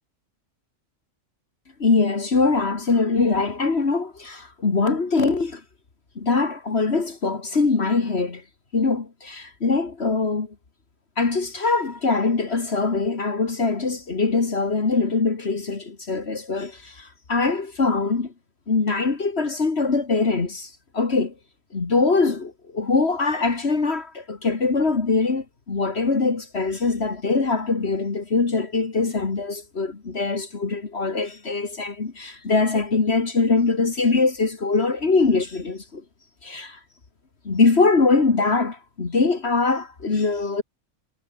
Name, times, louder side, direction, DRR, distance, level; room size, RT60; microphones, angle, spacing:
voice 1, 1.8-5.6 6.2-8.4 8.7-10.5 11.2-18.3 18.7-20.7 20.9-21.3 21.7-36.0 36.4-36.8 37.5-40.6, left 4 dB, 55° left, 2.3 m, -22 dB
omnidirectional pair, 1.3 m